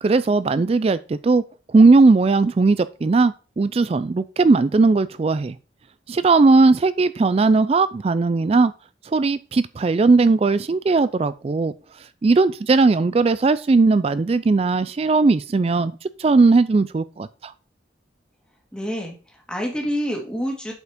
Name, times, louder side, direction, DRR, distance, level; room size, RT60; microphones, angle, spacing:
voice 1, 0.0-1.4 1.7-5.6 6.1-8.7 9.1-11.7 12.2-15.9 16.2-17.5, right 3 dB, 35° right, 0.3 m, -18 dB
voice 2, 18.7-20.7, equal, 5° left, 2.0 m, -27 dB
8.1 x 4.8 x 5.1 m
head